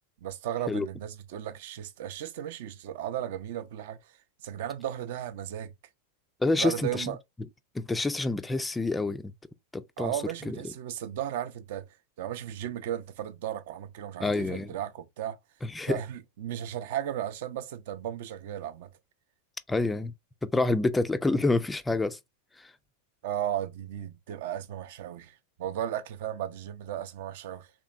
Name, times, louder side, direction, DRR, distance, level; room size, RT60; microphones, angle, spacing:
voice 1, 0.2-4.2 4.4-5.7 6.5-7.2 10.0-11.9 12.2-15.4 15.8-18.9 23.2-27.7, right 11 dB, 50° right, 0.5 m, -35 dB
voice 2, 6.4-7.1 7.7-9.3 9.7-10.1 10.5-10.6 14.2-14.7 15.6-16.0 19.7-20.1 20.4-22.2 22.6-22.7, left 2 dB, 10° left, 0.3 m, -27 dB
3.4 x 2.9 x 2.5 m
figure-of-eight pair, 90°, 0 cm